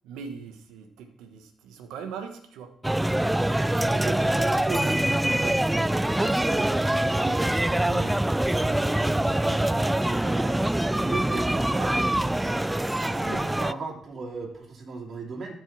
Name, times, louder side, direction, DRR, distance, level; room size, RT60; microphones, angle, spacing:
voice 1, 0.0-2.7, right 6 dB, 85° right, 6 dB, 1.3 m, -40 dB
sound 1, 2.8-13.7, right 1 dB, 15° right, 0.4 m, -24 dB
voice 2, 3.6-8.2 8.5-10.6 10.9-15.5, right 3 dB, 55° right, -1 dB, 3.3 m, -37 dB
12.5 x 5.5 x 6.1 m, 0.65 s
supercardioid pair, 45°, 0 cm